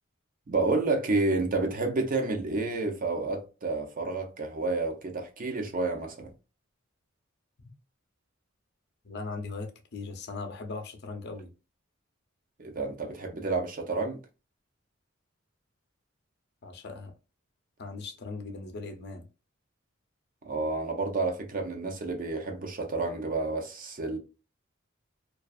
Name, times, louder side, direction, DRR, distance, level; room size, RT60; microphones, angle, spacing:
voice 1, 0.5-6.3 12.6-14.2 20.4-24.2, right 3 dB, 45° right, 0.6 m, -30 dB
voice 2, 9.0-11.5 16.6-17.1 17.8-19.3, left 3 dB, 55° left, 0.6 m, -39 dB
2.4 x 2.3 x 2.3 m
head